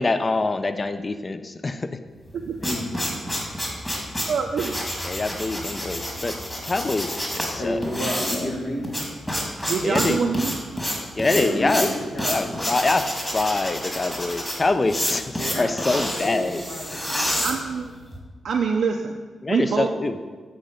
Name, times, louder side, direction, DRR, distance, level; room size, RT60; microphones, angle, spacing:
voice 1, 0.0-2.0 5.0-8.5 9.8-10.2 11.2-11.9 12.3-13.1 13.3-16.6 19.4-20.2, left 3 dB, 35° left, 10 dB, 0.4 m, -25 dB
sound 1, 2.2-18.2, equal, 15° left, 1.8 m, -29 dB
voice 2, 2.6-3.2 3.6-3.8 7.6-9.1 11.3-12.6 15.4-17.4, left 1 dB, 65° left, -2 dB, 1.7 m, -31 dB
voice 3, 4.3-4.8 9.7-10.8 17.4-17.9 18.4-19.2 19.5-19.9, right 5 dB, 75° right, 2 dB, 0.4 m, -25 dB
7.5 x 4.3 x 5.1 m, 1.4 s
cardioid pair, 65°, 0 cm